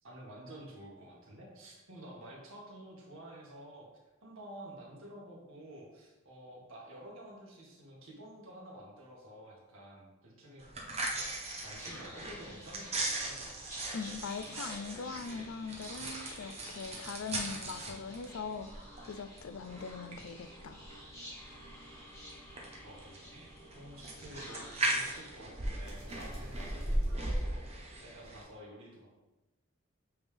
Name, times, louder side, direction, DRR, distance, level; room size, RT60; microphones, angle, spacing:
voice 1, 0.0-3.9 4.2-10.6 11.6-13.4 22.8-29.1, right 1 dB, 75° right, -3 dB, 1.8 m, -50 dB
sound 1, 10.6-28.4, right 1 dB, 30° right, 0.9 m, -39 dB
Whispering, 11.3-27.7, equal, 15° left, 1.6 m, -51 dB
voice 2, 13.9-18.8 19.0-20.8, left 5 dB, 70° left, 10 dB, 0.4 m, -41 dB
8.0 x 3.6 x 3.4 m, 1.1 s
head